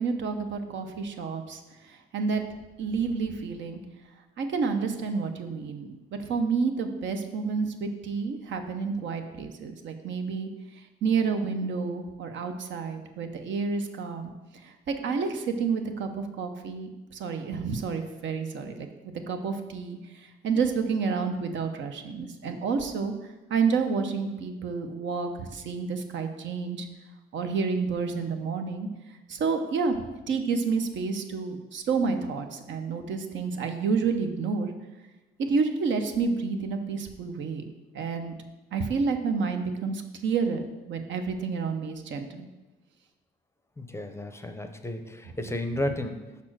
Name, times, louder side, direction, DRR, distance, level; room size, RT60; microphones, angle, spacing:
voice 1, 0.0-1.6 1.9-2.4 2.8-3.8 4.4-10.5 11.0-14.3 14.6-18.9 19.3-20.0 20.4-23.1 23.5-26.9 27.3-28.9 29.3-30.0 30.3-34.7 35.4-37.6 37.9-38.3 38.7-42.5, right 5 dB, 70° right, 6 dB, 0.7 m, -29 dB
voice 2, 43.8-46.4, left 1 dB, 15° left, 7 dB, 0.6 m, -33 dB
5.4 x 4.3 x 6.0 m, 1.1 s
cardioid pair, 90°, 20 cm